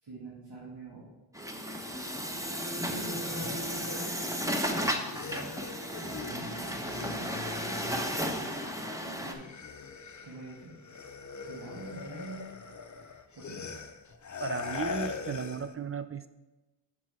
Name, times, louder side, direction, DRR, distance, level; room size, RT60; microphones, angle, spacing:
voice 1, 0.0-1.1 2.8-4.1 4.7-5.6 6.0-7.4 8.2-8.5 9.0-9.5 10.2-10.7 11.5-12.5 13.3-13.7, right 1 dB, 65° right, -6 dB, 1.7 m, -45 dB
Truck, 1.3-9.3, equal, 5° right, 0.9 m, -34 dB
sound 1, 2.7-8.9 9.2-15.7, left 5 dB, 40° left, 0.6 m, -42 dB
voice 2, 14.4-16.3, right 6 dB, 30° right, 12 dB, 0.4 m, -35 dB
6.1 x 5.5 x 4.6 m, 1.1 s
cardioid pair, 40°, 47 cm